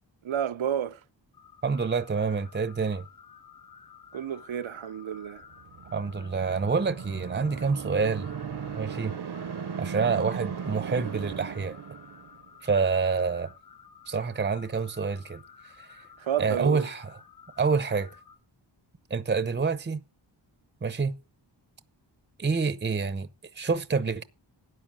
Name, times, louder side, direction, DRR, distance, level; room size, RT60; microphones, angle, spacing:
voice 1, 0.2-1.0 4.1-5.4 16.2-16.9, right 9 dB, 90° right, 0.8 m, -30 dB
sound 1, 1.3-18.4, left 7 dB, 55° left, 6.3 m, -53 dB
voice 2, 1.6-3.0 5.9-8.3 8.7-9.1 9.8-11.7 12.6-13.5 14.1-15.4 15.8-16.0 16.4-17.1 17.6-18.1 19.1-20.0 20.8-21.1 22.4-23.3 23.6-24.2, right 5 dB, 25° right, 0.8 m, -27 dB
sound 2, 5.5-12.5, right 7 dB, 55° right, 0.8 m, -37 dB
12.5 x 9.6 x 6.1 m
wide cardioid pair, 105°, 46 cm